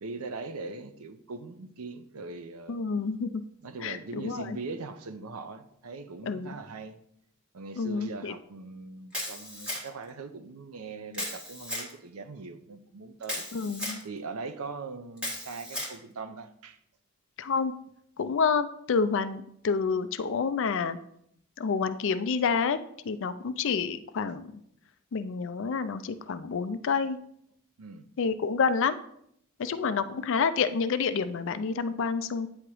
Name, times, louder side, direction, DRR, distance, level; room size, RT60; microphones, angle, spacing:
voice 1, 0.0-2.8 3.6-7.0 7.5-13.5 14.0-16.8 27.8-28.1, right 4 dB, 85° right, 0.6 m, -41 dB
voice 2, 2.7-3.4 3.8-4.6 6.2-6.5 7.8-8.3 13.5-14.0 17.4-17.7 18.2-21.0 21.6-22.8 23.0-24.4 25.1-27.2 28.2-29.0 29.6-32.5, left 5 dB, 60° left, 0.4 m, -28 dB
Camera, 9.1-10.1 11.1-11.9 13.2-14.0 15.2-16.0, left 1 dB, 5° right, 1.5 m, -35 dB
8.7 x 2.9 x 4.7 m
head